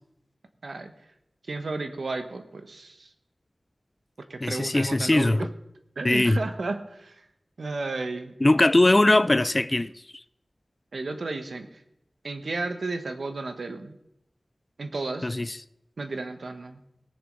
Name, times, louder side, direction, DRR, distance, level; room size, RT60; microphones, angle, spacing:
voice 1, 1.5-3.1 4.3-5.5 6.0-7.2 7.6-8.3 10.9-11.7 12.2-14.0 14.8-15.3 16.0-16.8, right 3 dB, 85° right, 1.2 m, -33 dB
voice 2, 4.4-5.5 6.0-6.4 8.4-9.9 15.2-15.5, left 2 dB, 30° left, 0.4 m, -20 dB
18.0 x 7.0 x 5.3 m
wide cardioid pair, 65°, 0 cm